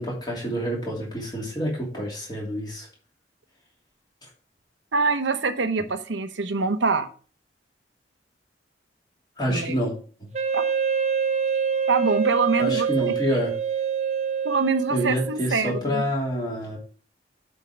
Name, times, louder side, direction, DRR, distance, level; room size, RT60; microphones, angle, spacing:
voice 1, 0.0-2.9 9.4-9.9 12.6-13.5 14.9-16.8, equal, 20° left, -3 dB, 2.8 m, -27 dB
voice 2, 4.9-7.1 9.5-9.8 10.5-10.6 11.9-12.9 14.4-16.0, right 4 dB, 90° right, 8 dB, 0.9 m, -24 dB
Wind instrument woodwind instrument, 10.3-15.4, right 7 dB, 40° right, 0.8 m, -25 dB
8.6 x 4.5 x 5.0 m, 0.41 s
head